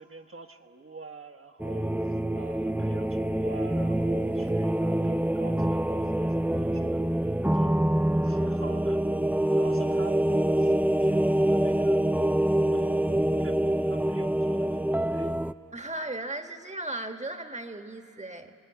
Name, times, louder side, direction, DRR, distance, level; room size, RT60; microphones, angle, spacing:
voice 1, 0.0-7.9 8.2-9.0 9.5-10.2 10.6-12.0 12.7-15.4, right 4 dB, 45° right, 5 dB, 1.4 m, -47 dB
sound 1, 1.6-15.5, right 1 dB, 5° right, 0.5 m, -25 dB
voice 2, 15.7-18.5, right 2 dB, 25° right, 6 dB, 1.6 m, -36 dB
24.0 x 19.0 x 9.9 m, 2.5 s
cardioid pair, 45°, 29 cm